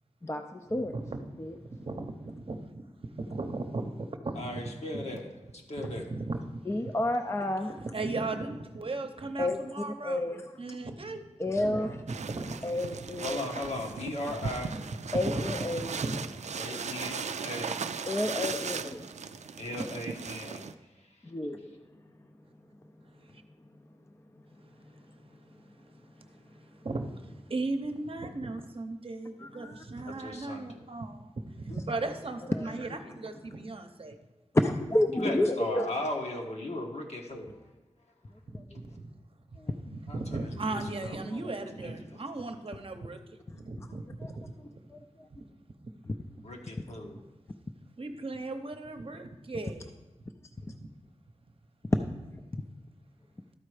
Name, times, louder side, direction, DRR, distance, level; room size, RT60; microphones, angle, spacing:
voice 1, 0.2-0.9 1.4-1.5 6.7-7.7 9.4-9.6 10.0-10.5 11.4-12.0 12.6-13.4 15.1-15.9 18.1-19.1 21.2-21.8 29.4-29.8 31.7-31.8 32.5-33.0 34.5-35.9 38.5-38.8 39.6-39.8 43.5-43.6 44.2-44.3 44.6-45.3 46.0-46.1 50.6-50.7 51.8-52.0, left 1 dB, 25° left, 5 dB, 0.5 m, -30 dB
voice 2, 0.8-1.4 1.7-4.4 4.6-5.0 5.8-6.6 7.8-10.3 10.6-12.6 15.2-15.5 15.8-16.5 23.2-23.4 24.9-34.2 38.5-39.1 39.5-39.6 39.8-44.5 48.0-49.9 50.7-50.9, right 2 dB, 55° right, 6 dB, 0.8 m, -37 dB
voice 3, 4.3-5.3 5.7-6.0 11.5-11.8 13.2-14.7 16.6-17.8 19.6-20.7 21.0-21.1 30.0-30.8 35.1-37.7 40.1-42.2 46.4-47.2, left 1 dB, 70° left, 1 dB, 1.3 m, -38 dB
sound 1, 12.1-20.7, right 6 dB, 90° right, 0.4 m, -37 dB
13.0 x 4.3 x 4.9 m, 1.1 s
wide cardioid pair, 90°, 12 cm